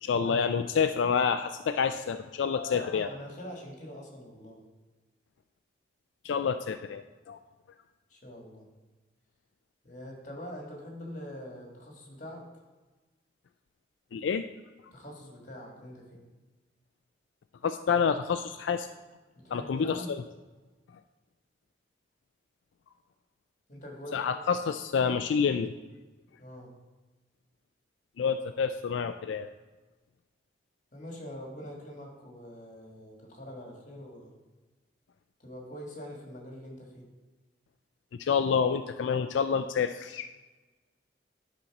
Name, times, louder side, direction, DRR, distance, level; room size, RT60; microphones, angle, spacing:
voice 1, 0.0-3.1 6.2-7.4 14.1-14.4 17.6-18.9 19.5-20.0 24.1-25.7 28.2-29.5 38.2-40.3, left 6 dB, 85° left, 9 dB, 0.3 m, -28 dB
voice 2, 2.7-4.6 8.1-8.6 9.8-12.4 14.9-16.2 19.4-20.1 23.7-24.4 26.4-26.7 30.9-34.3 35.4-37.1, equal, 40° left, 0 dB, 1.8 m, -44 dB
10.5 x 4.2 x 5.9 m, 1.2 s
head